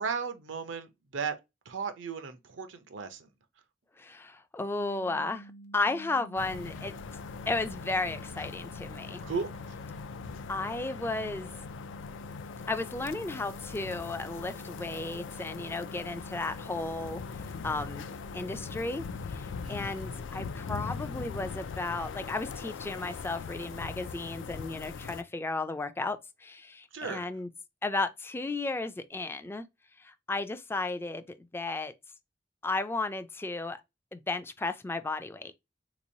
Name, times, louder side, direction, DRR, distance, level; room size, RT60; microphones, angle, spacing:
voice 1, 0.0-1.3 1.7-3.3 9.2-9.5 16.1-16.2 19.6-20.1 26.9-27.2, right 5 dB, 90° right, 0.6 m, -35 dB
voice 2, 4.0-6.9 7.5-9.2 10.5-11.5 12.7-18.1 18.3-27.5 27.8-29.6 30.0-31.9 32.6-33.8 34.1-35.5, left 3 dB, 15° left, 0.3 m, -34 dB
sound 1, 4.8-19.2, right 2 dB, 55° left, 0.7 m, -49 dB
sound 2, 6.4-25.2, left 5 dB, 90° left, 0.4 m, -41 dB
3.6 x 3.0 x 2.6 m
head